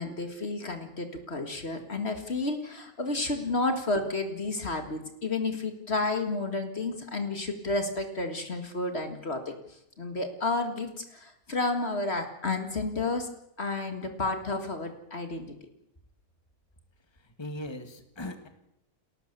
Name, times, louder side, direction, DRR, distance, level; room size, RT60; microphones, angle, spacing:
voice 1, 0.0-13.3 13.6-15.5, left 2 dB, 45° left, 6 dB, 2.2 m, -31 dB
voice 2, 17.1-18.5, left 1 dB, 20° left, 7 dB, 1.9 m, -39 dB
29.5 x 14.0 x 6.9 m, 0.81 s
omnidirectional pair, 1.5 m